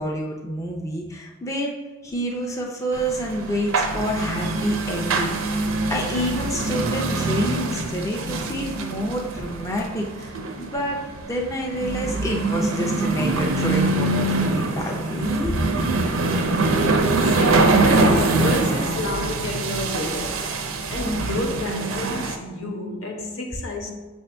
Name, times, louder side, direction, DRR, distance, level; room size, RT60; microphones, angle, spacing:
voice 1, 0.0-1.8 2.0-10.3 10.6-11.0 11.3-15.6, equal, 15° left, 0.5 m, -28 dB
sound 1, 2.9-22.4, right 2 dB, 90° right, 0.5 m, -24 dB
voice 2, 15.6-16.0 16.5-20.5 20.9-23.9, left 1 dB, 80° left, 0.8 m, -30 dB
5.9 x 2.7 x 3.3 m
head